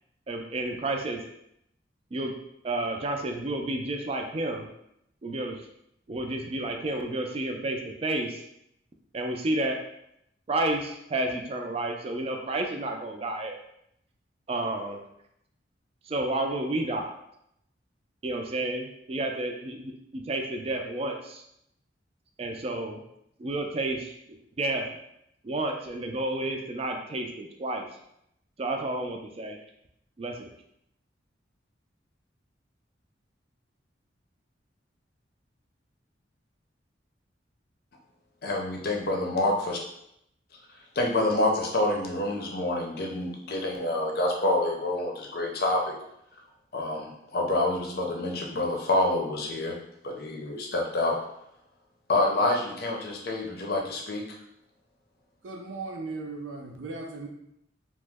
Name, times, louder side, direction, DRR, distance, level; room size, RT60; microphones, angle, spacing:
voice 1, 0.3-1.2 2.1-2.3 2.6-4.7 5.2-5.7 6.1-8.4 9.1-9.8 10.5-13.6 14.5-15.0 16.1-17.1 18.2-21.4 22.4-23.0 23.4-24.1 24.6-24.9 25.4-27.9 28.6-29.6 30.2-30.5, right 2 dB, 35° right, 3 dB, 0.4 m, -31 dB
voice 2, 38.4-39.8 41.0-45.9 46.7-49.8 50.0-51.2 52.1-54.2, left 2 dB, 55° left, 0 dB, 0.6 m, -27 dB
voice 3, 55.4-57.3, right 3 dB, 90° right, 2 dB, 0.5 m, -37 dB
2.9 x 2.0 x 3.4 m, 0.78 s
head